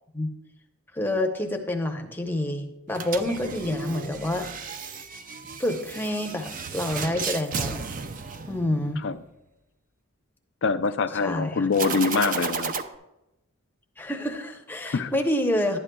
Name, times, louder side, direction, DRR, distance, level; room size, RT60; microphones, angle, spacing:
voice 1, 0.9-4.5 5.6-7.8 8.5-9.1 11.2-11.7 14.0-15.8, left 1 dB, 10° left, 3 dB, 0.8 m, -28 dB
sound 1, 2.9-9.1 11.7-12.8, right 5 dB, 40° right, 0.5 m, -33 dB
voice 2, 10.6-12.7 14.8-15.1, left 4 dB, 60° left, 11 dB, 0.5 m, -24 dB
11.5 x 9.8 x 2.3 m, 0.92 s
head